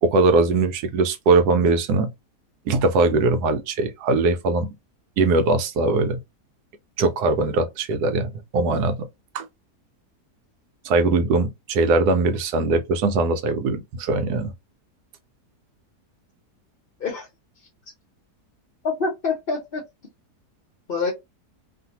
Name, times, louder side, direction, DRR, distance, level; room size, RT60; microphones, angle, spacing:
voice 1, 0.0-2.1 2.7-4.7 5.2-6.2 7.0-9.0 9.3-9.4 10.8-14.5, right 3 dB, 80° right, 1.1 m, -21 dB
voice 2, 18.8-19.8 20.9-21.1, left 4 dB, 45° left, 0.8 m, -26 dB
2.7 x 2.5 x 2.8 m
omnidirectional pair, 1.7 m